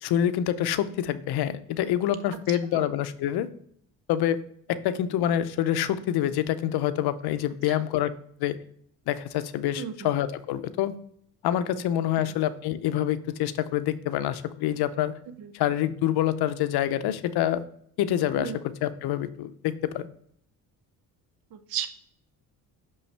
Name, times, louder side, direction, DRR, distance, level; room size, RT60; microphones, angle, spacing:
voice 1, 0.0-3.5 4.1-4.4 4.7-8.1 8.4-8.6 9.1-11.0 11.4-15.1 15.5-17.6 18.0-18.5 18.8-20.1, left 11 dB, 85° left, 13 dB, 0.6 m, -26 dB
voice 2, 9.7-10.1 12.2-12.3 15.4-15.5 18.4-18.6 21.5-21.9, right 9 dB, 70° right, 9 dB, 0.7 m, -34 dB
6.2 x 5.4 x 3.3 m, 0.66 s
cardioid pair, 150°, 37 cm